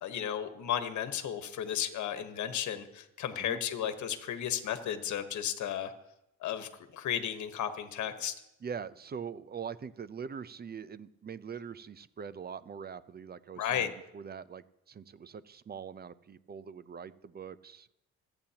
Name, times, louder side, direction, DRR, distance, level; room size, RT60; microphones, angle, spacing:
voice 1, 0.0-5.9 6.4-8.3 13.6-13.9, left 9 dB, 70° left, 8 dB, 1.3 m, -34 dB
voice 2, 8.6-17.9, right 7 dB, 30° right, 16 dB, 0.6 m, -43 dB
26.0 x 8.9 x 2.9 m, 0.84 s
cardioid pair, 90°, 30 cm